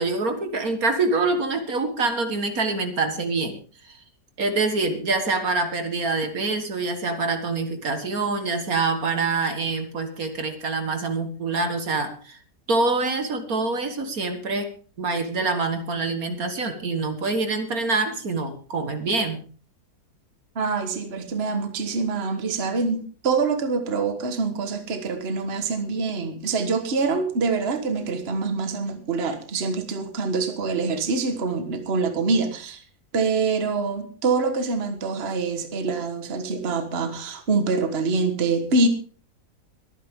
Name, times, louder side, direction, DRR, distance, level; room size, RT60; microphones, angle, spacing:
voice 1, 0.0-3.6 3.8-4.0 4.4-12.4 12.7-14.7 15.0-19.4, right 3 dB, 60° right, 7 dB, 2.0 m, -25 dB
voice 2, 20.5-32.8 33.1-38.9, right 4 dB, 40° right, 7 dB, 1.7 m, -25 dB
23.0 x 9.5 x 3.7 m, 0.40 s
omnidirectional pair, 1.8 m